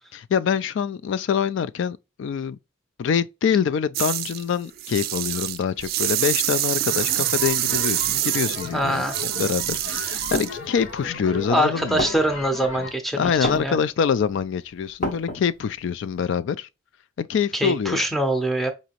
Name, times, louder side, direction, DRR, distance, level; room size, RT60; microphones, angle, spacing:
voice 1, 0.1-2.6 3.0-12.0 13.1-16.7 17.2-18.0, left 7 dB, 60° left, 0.3 m, -25 dB
sound 1, 3.9-4.4 4.8-10.6, right 14 dB, 50° right, 0.3 m, -26 dB
sound 2, 6.9-12.9, left 4 dB, 90° left, 0.9 m, -36 dB
voice 2, 8.7-9.1 11.3-13.8 17.5-18.7, right 1 dB, ahead, 0.6 m, -24 dB
sound 3, 10.1-10.6 11.3-11.4 11.7-11.8 12.0-12.6 13.2-13.8 14.2-14.3 14.5-15.6, equal, 40° left, 0.7 m, -29 dB
5.0 x 2.7 x 2.9 m
head